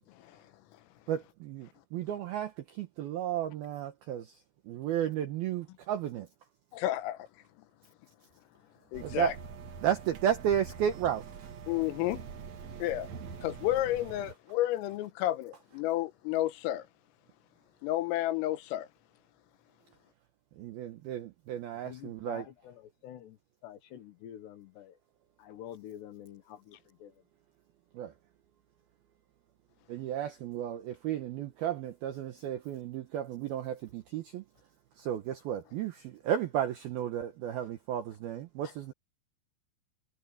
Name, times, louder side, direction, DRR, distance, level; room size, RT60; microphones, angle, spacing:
voice 1, 1.1-4.4 4.7-6.3 9.0-9.3 9.8-11.5 20.6-22.4 27.9-28.1 29.9-34.4 35.0-38.9, right 10 dB, 80° right, 2.2 m, -33 dB
voice 2, 6.7-7.3 8.9-9.3 11.7-12.2 12.8-13.1 13.4-16.9 17.8-18.9, left 14 dB, 85° left, 3.8 m, -31 dB
sound 1, 8.9-14.3, right 6 dB, 60° right, 2.0 m, -45 dB
voice 3, 21.8-25.0 25.4-27.2, left 11 dB, 70° left, 3.0 m, -48 dB
omnidirectional pair, 5.9 m